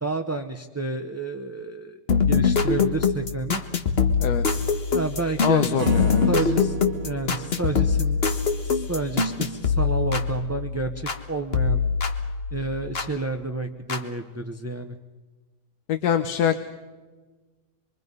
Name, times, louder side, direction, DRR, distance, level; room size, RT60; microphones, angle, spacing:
voice 1, 0.0-2.0 2.3-3.6 4.9-5.8 6.3-6.8 7.0-8.2 8.6-11.8 12.5-15.0, right 3 dB, 15° right, 5 dB, 0.5 m, -30 dB
sound 1, 2.1-11.2 11.5-13.1 13.9-14.0, left 5 dB, 40° left, 1.5 m, -24 dB
voice 2, 4.2-4.6 5.4-6.5 15.9-16.6, left 8 dB, 80° left, 8 dB, 1.5 m, -24 dB
Acoustic guitar / Strum, 5.8-9.1, right 6 dB, 55° right, 2.1 m, -35 dB
25.5 x 23.5 x 5.4 m, 1.3 s
omnidirectional pair, 1.7 m